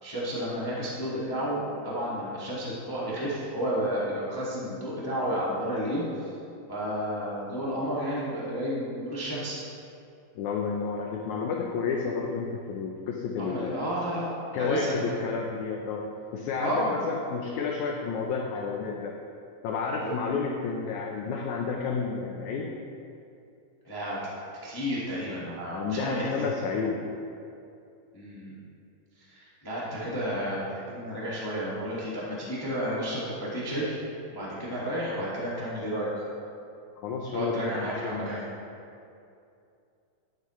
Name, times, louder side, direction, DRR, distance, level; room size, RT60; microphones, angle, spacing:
voice 1, 0.0-6.3 6.7-9.6 13.4-14.3 14.6-15.1 16.6-16.9 20.0-20.1 23.8-24.2 24.6-26.4 28.1-28.6 29.3-34.0 34.3-36.2 37.3-38.4, equal, 35° left, -8 dB, 0.3 m, -31 dB
voice 2, 10.3-13.8 14.5-16.1 16.3-19.1 19.6-22.7 25.7-27.0 37.0-38.4, left 5 dB, 75° left, 0 dB, 1.8 m, -31 dB
12.0 x 11.0 x 3.1 m, 2.6 s
omnidirectional pair, 4.2 m